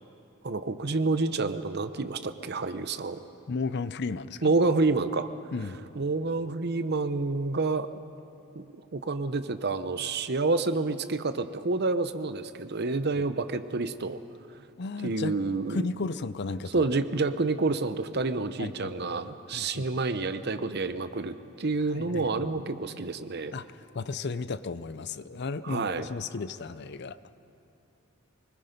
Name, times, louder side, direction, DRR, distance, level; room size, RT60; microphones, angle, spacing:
voice 1, 0.4-3.2 4.4-5.3 6.0-7.9 8.5-8.6 8.9-14.2 15.0-15.8 16.7-23.5 25.6-26.1, right 3 dB, 50° right, 11 dB, 0.8 m, -28 dB
voice 2, 3.5-4.5 5.5-5.8 13.1-13.2 14.8-15.3 15.7-16.9 18.6-19.2 19.5-20.0 21.9-22.4 23.5-27.2, left 4 dB, 55° left, 15 dB, 0.5 m, -34 dB
24.0 x 20.5 x 5.2 m, 2.8 s
head